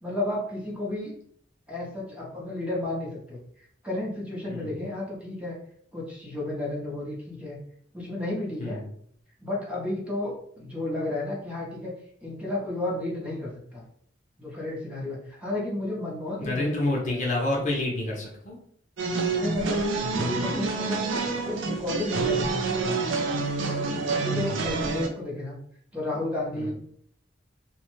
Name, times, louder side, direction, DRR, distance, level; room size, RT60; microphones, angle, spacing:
voice 1, 0.0-1.1 1.7-3.4 3.8-5.5 5.9-7.6 7.9-8.8 9.4-11.9 12.2-13.8 14.4-16.7 17.1-17.2 19.4-21.0 21.4-23.1 23.8-25.6 25.9-26.7, left 1 dB, 5° right, -4 dB, 0.7 m, -32 dB
voice 2, 4.5-4.8 8.6-8.9 16.4-18.6 24.3-24.7 26.6-26.7, left 2 dB, 40° left, -2 dB, 0.7 m, -29 dB
sound 1, 19.0-25.1, right 3 dB, 75° right, 0.5 m, -27 dB
3.0 x 2.1 x 3.0 m, 0.64 s
head